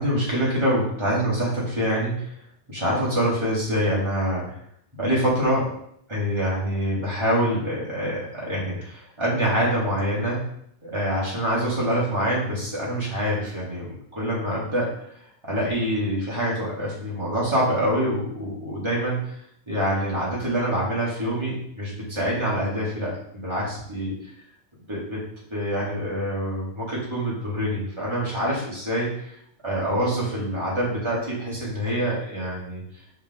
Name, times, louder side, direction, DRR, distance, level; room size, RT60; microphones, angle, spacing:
voice 1, 0.0-2.3 2.7-4.6 4.9-5.7 6.1-10.5 10.8-14.9 15.4-19.3 19.7-24.3 24.9-25.2 25.5-29.4 29.6-32.8, equal, 10° right, -7 dB, 2.0 m, -25 dB
7.0 x 5.0 x 3.9 m, 0.69 s
omnidirectional pair, 3.7 m